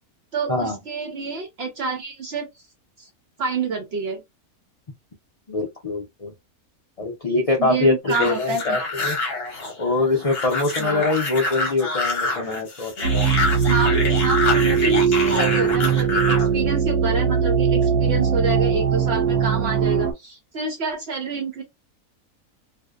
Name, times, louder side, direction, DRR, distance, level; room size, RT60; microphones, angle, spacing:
voice 1, 0.3-2.5 3.0-3.1 3.4-4.2 7.6-8.8 10.8-11.1 13.7-13.9 14.2-21.6, right 4 dB, 65° right, 0.6 m, -28 dB
voice 2, 5.5-6.3 7.0-9.2 9.8-13.1, left 3 dB, 70° left, 0.3 m, -23 dB
Restrained Zombie, 8.1-16.5, left 3 dB, 50° left, 0.9 m, -26 dB
sound 1, 13.0-20.1, right 7 dB, 90° right, 1.1 m, -20 dB
2.6 x 2.1 x 2.2 m
omnidirectional pair, 1.6 m